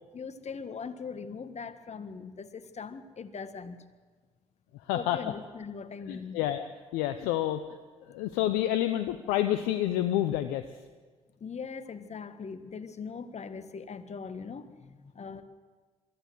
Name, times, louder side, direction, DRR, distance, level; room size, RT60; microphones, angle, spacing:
voice 1, 0.1-3.8 4.9-6.4 11.4-15.4, left 5 dB, 45° left, 11 dB, 1.6 m, -40 dB
voice 2, 4.9-5.2 6.1-6.7 6.9-7.6 8.1-10.6, left 13 dB, 80° left, 10 dB, 0.7 m, -28 dB
23.0 x 14.5 x 8.0 m, 1.4 s
hypercardioid pair, 45°, 15 cm